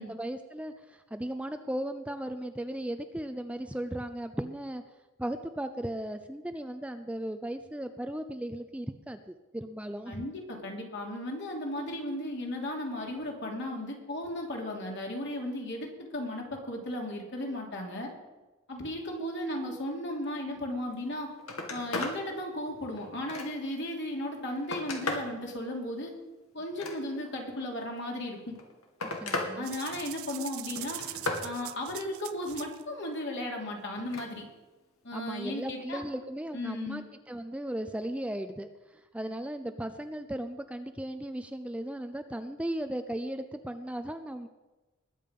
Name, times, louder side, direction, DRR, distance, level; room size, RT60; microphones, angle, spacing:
voice 1, 0.0-4.8 5.2-10.2 29.0-29.7 35.1-44.5, right 1 dB, 5° right, 8 dB, 0.5 m, -36 dB
voice 2, 10.1-18.1 18.7-21.3 21.7-26.1 26.5-28.5 29.5-31.0 31.4-34.4 35.0-36.0 36.5-37.1, left 1 dB, 55° left, 0 dB, 3.2 m, -35 dB
Telephone, 21.0-21.1 21.4-22.2 22.7-23.8 24.3-25.3 26.6-27.4 28.4-29.5 29.9-30.3 30.8-31.5 33.9-34.3 35.7-35.8, left 2 dB, 85° left, 2.4 m, -36 dB
sound 1, 29.6-32.8, right 16 dB, 80° right, 0.6 m, -42 dB
20.5 x 8.6 x 5.4 m, 1.1 s
head